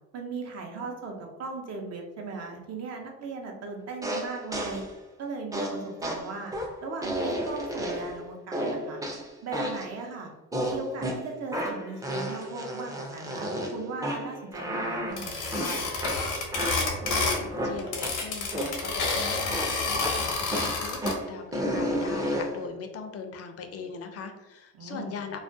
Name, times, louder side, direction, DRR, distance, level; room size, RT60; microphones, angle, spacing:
voice 1, 0.1-4.8 5.2-6.5 6.8-9.0 9.4-10.3 10.6-15.8 24.7-25.2, right 4 dB, 55° right, 2 dB, 0.6 m, -38 dB
sound 1, 4.0-4.9 5.5-8.2 8.5-9.9 10.5-18.2 18.5-19.2 19.5-22.6, equal, 10° right, 0.4 m, -32 dB
sound 2, 15.2-17.5 17.7-21.1, left 3 dB, 85° left, 0.7 m, -29 dB
voice 2, 16.5-25.4, left 5 dB, 50° left, 6 dB, 0.4 m, -40 dB
2.3 x 2.2 x 2.5 m, 1.0 s
cardioid pair, 90°, 30 cm